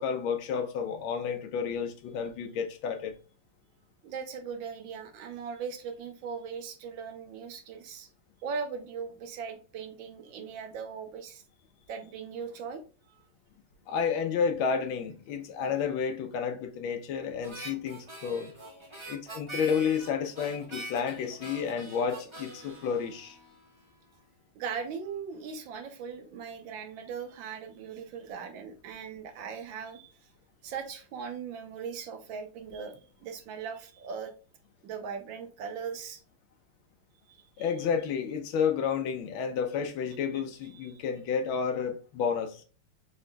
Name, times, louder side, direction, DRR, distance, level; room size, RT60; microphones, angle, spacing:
voice 1, 0.0-3.1 13.9-18.5 19.1-23.4 37.6-42.6, left 6 dB, 70° left, 1.5 m, -31 dB
voice 2, 4.0-8.1 8.4-11.4 11.9-12.8 24.5-30.1 30.6-34.3 34.8-36.2 37.3-37.4 40.6-41.0, right 6 dB, 70° right, 1.4 m, -39 dB
Harmonica, 17.4-23.9, right 1 dB, 25° right, 0.6 m, -44 dB
5.0 x 4.3 x 2.2 m
omnidirectional pair, 2.4 m